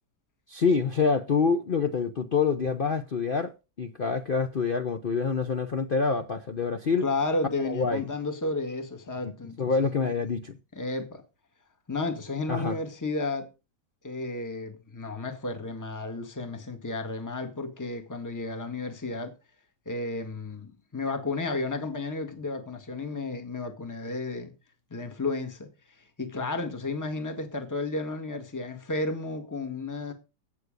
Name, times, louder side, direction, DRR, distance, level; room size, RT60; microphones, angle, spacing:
voice 1, 0.5-7.1 7.6-8.0 9.6-10.5 12.5-12.8, left 5 dB, 45° left, 0.7 m, -26 dB
voice 2, 7.0-10.1 10.7-11.2 11.9-13.5 14.0-19.3 19.9-24.5 24.9-25.7 26.2-30.1, left 3 dB, 10° left, 1.7 m, -32 dB
16.5 x 7.1 x 5.3 m
omnidirectional pair, 1.9 m